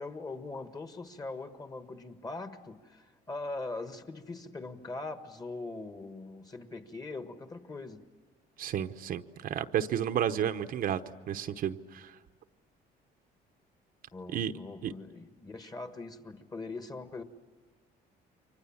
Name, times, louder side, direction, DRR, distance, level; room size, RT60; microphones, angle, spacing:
voice 1, 0.0-8.0 14.1-17.2, left 3 dB, 20° left, 1.5 m, -41 dB
voice 2, 8.6-11.0 11.3-12.1 14.3-14.5 14.8-14.9, right 9 dB, 60° right, 0.9 m, -31 dB
29.5 x 24.5 x 7.3 m
cardioid pair, 110°, 17 cm